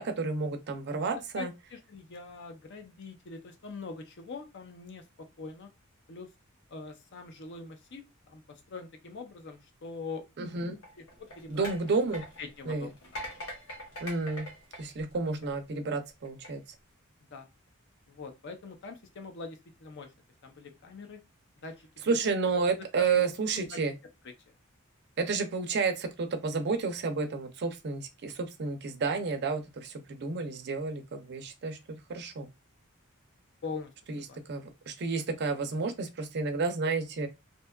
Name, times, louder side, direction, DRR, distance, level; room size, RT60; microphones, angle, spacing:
voice 1, 0.0-1.5 10.4-10.8 11.5-12.2 12.7-12.9 14.0-14.5 14.8-16.6 22.1-23.9 25.2-32.5 34.1-34.2 34.5-37.3, right 4 dB, 50° right, 0.5 m, -31 dB
voice 2, 1.4-5.7 6.1-6.3 6.7-10.3 11.0-11.7 12.4-13.3 17.3-17.5 18.1-20.1 20.4-21.2 21.6-22.3 22.7-23.2 23.5-23.8 24.5-24.6 33.6-33.9 34.3-34.4, left 4 dB, 55° left, 0.5 m, -43 dB
sound 1, 10.8-15.7 16.3-16.5, equal, 80° left, 0.9 m, -44 dB
2.7 x 2.2 x 2.2 m
head